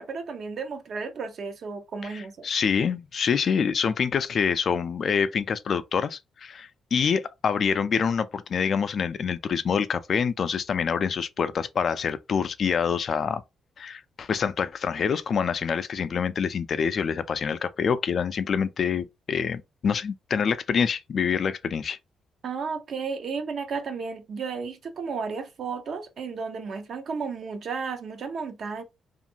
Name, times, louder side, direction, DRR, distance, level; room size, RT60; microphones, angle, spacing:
voice 1, 0.0-2.5 22.4-28.8, right 5 dB, 60° right, 0.6 m, -33 dB
voice 2, 2.0-13.4 13.8-22.0, left 6 dB, 55° left, 0.3 m, -26 dB
2.6 x 2.4 x 2.8 m
cardioid pair, 70°, 0 cm